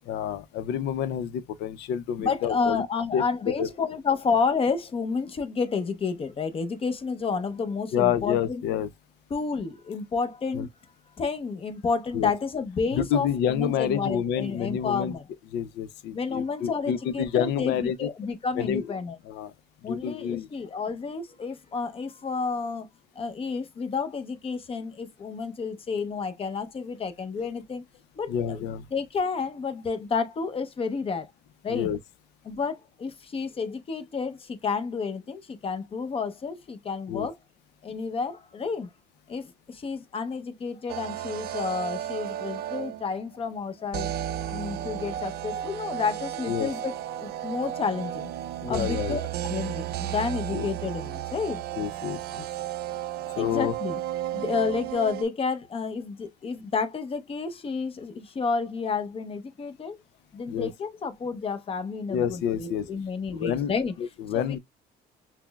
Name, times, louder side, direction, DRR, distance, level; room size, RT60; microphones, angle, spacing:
voice 1, 0.1-2.8 3.1-3.2 3.6-3.7 7.9-8.9 10.5-10.7 12.1-12.3 12.9-15.1 15.5-18.1 18.6-18.8 19.3-19.5 19.9-20.5 28.3-28.8 31.7-32.0 37.1-37.3 46.5-46.7 48.6-49.2 50.5-50.7 51.8-52.5 53.4-53.7 60.5-60.7 62.1-62.9 63.3-63.7 64.0-64.6, left 9 dB, 85° left, 0.5 m, -28 dB
voice 2, 2.2-8.6 9.3-10.7 11.2-15.3 16.1-19.2 19.8-22.9 23.2-27.8 28.2-31.3 31.6-31.9 32.4-37.4 37.8-38.9 39.3-44.1 44.4-48.3 48.7-49.2 49.5-51.6 53.3-54.0 54.3-60.0 60.3-63.9 64.3-64.6, left 5 dB, 35° left, 0.7 m, -30 dB
sound 1, 40.9-43.2 43.9-55.3, right 12 dB, 65° right, 0.4 m, -33 dB
5.9 x 2.0 x 2.2 m
cardioid pair, 110°, 17 cm